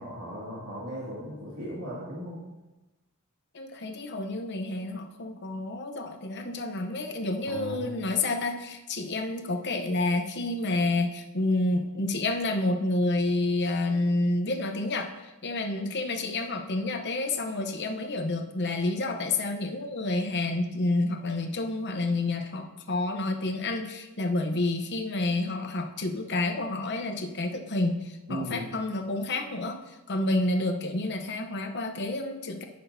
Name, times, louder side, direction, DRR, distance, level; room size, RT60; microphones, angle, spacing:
voice 1, 0.0-2.4 7.5-7.9 28.3-28.6, equal, 85° right, -8 dB, 2.2 m, -37 dB
voice 2, 3.5-32.6, left 2 dB, 55° left, 5 dB, 0.8 m, -29 dB
17.0 x 6.0 x 2.7 m, 1.0 s
head